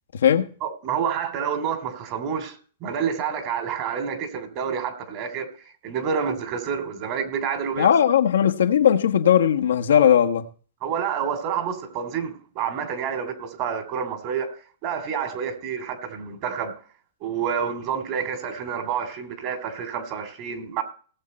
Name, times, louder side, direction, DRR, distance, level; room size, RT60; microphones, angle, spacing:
voice 1, 0.6-5.5 5.8-7.9 10.8-14.5 14.8-16.7 17.2-20.8, right 7 dB, 40° right, 2.9 m, -28 dB
voice 2, 7.8-10.5, left 9 dB, 85° left, 1.2 m, -18 dB
18.0 x 7.3 x 4.3 m
hypercardioid pair, 135°, 0 cm